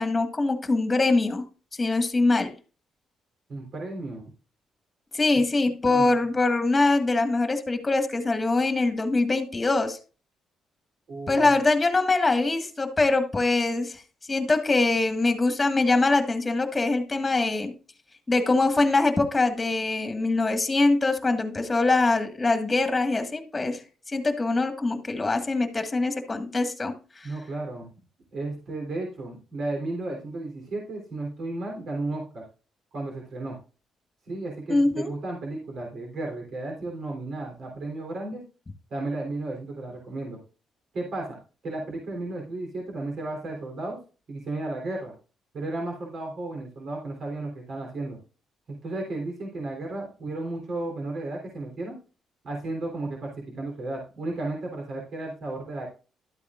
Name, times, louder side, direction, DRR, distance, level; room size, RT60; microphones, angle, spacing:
voice 1, 0.0-1.4 1.8-2.5 5.1-10.0 11.3-14.0 14.3-17.7 18.3-27.3 34.7-35.1, left 3 dB, 20° left, 1.6 m, -23 dB
voice 2, 3.5-4.3 5.9-6.1 11.1-11.5 27.2-27.9 28.3-32.4 32.9-33.6 34.3-38.4 38.9-40.4 40.9-41.4 41.6-44.0 44.3-45.1 45.5-48.2 48.7-52.0 52.4-55.9, right 2 dB, 60° right, 3.4 m, -33 dB
12.5 x 8.5 x 2.5 m
cardioid pair, 90°, 0 cm